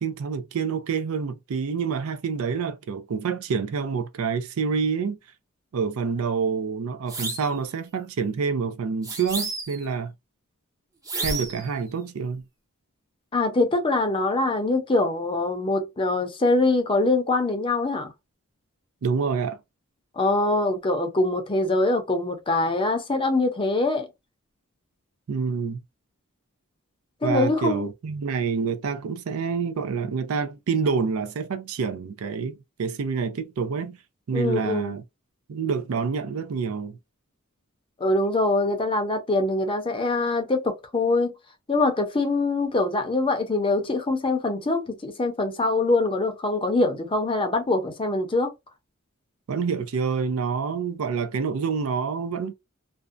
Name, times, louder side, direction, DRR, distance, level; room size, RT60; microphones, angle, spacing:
voice 1, 0.0-5.2 5.7-10.1 11.2-12.4 19.0-19.6 25.3-25.8 27.2-34.0 34.3-35.0 35.5-37.0 49.5-52.5, right 5 dB, 70° right, 0.4 m, -27 dB
sound 1, 7.1-7.6 9.0-9.9 11.1-11.7, right 2 dB, 15° right, 0.6 m, -31 dB
voice 2, 13.3-18.1 20.2-24.1 27.2-27.8 34.3-34.9 38.0-41.3 41.7-48.5, left 2 dB, 25° left, 0.5 m, -23 dB
2.6 x 2.1 x 2.4 m
head